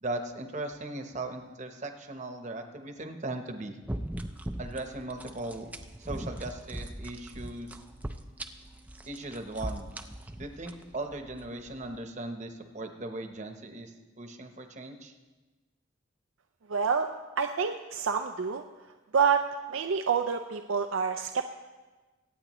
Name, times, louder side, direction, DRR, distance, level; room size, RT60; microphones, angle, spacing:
voice 1, 0.0-3.8 4.6-5.7 6.0-7.8 9.1-9.9 10.4-15.1, right 2 dB, 35° right, 6 dB, 0.9 m, -38 dB
sound 1, 3.9-12.0, right 1 dB, 10° right, 0.4 m, -40 dB
voice 2, 16.7-17.1 17.4-18.6 19.1-21.5, right 6 dB, 85° right, 6 dB, 0.5 m, -27 dB
24.0 x 9.0 x 3.1 m, 1.3 s
head